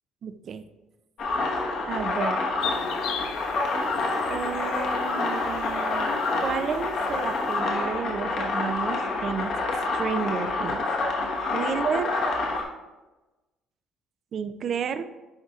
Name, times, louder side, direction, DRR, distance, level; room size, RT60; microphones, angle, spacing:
voice 1, 0.2-0.6 1.9-2.5 4.3-6.1 6.4-9.5 9.9-10.9 11.5-12.1 14.3-15.1, right 6 dB, 50° right, 11 dB, 0.4 m, -31 dB
sound 1, 1.2-12.6, left 3 dB, 65° left, 1.1 m, -27 dB
sound 2, 2.6-7.6, left 7 dB, 80° left, 0.5 m, -39 dB
9.9 x 4.1 x 2.4 m, 1.1 s
cardioid pair, 110°, 0 cm